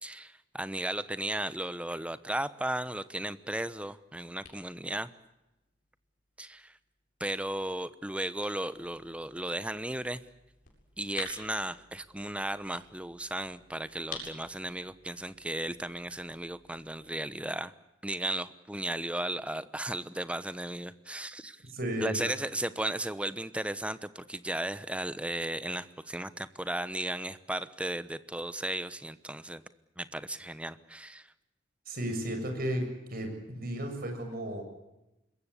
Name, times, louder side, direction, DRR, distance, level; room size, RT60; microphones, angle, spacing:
voice 1, 0.0-5.1 6.4-6.7 7.2-10.2 11.0-17.7 18.0-21.6 22.0-29.6 30.0-31.3, right 1 dB, 5° right, 14 dB, 1.0 m, -35 dB
sound 1, 3.6-17.0, left 4 dB, 50° left, 7.8 m, -51 dB
voice 2, 21.7-22.2 31.9-32.8 33.1-34.6, right 1 dB, 55° right, 5 dB, 7.1 m, -34 dB
26.5 x 22.0 x 8.4 m, 0.95 s
head